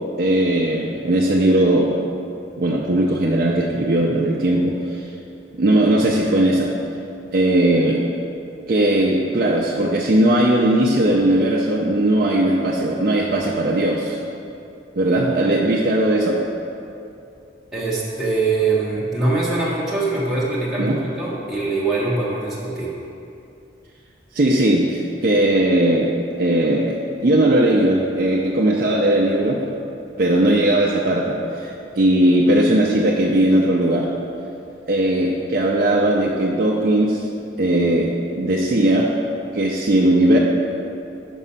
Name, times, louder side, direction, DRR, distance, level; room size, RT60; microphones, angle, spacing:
voice 1, 0.2-1.9 2.6-5.1 5.6-6.7 7.3-8.0 8.7-14.2 15.0-16.4 20.8-21.0 24.3-29.6 30.2-34.1 34.9-37.3 37.6-39.1 39.5-40.4, right 1 dB, 50° right, -3 dB, 0.5 m, -18 dB
voice 2, 17.7-22.9, right 3 dB, ahead, -8 dB, 1.0 m, -23 dB
5.4 x 4.9 x 5.6 m, 2.7 s
head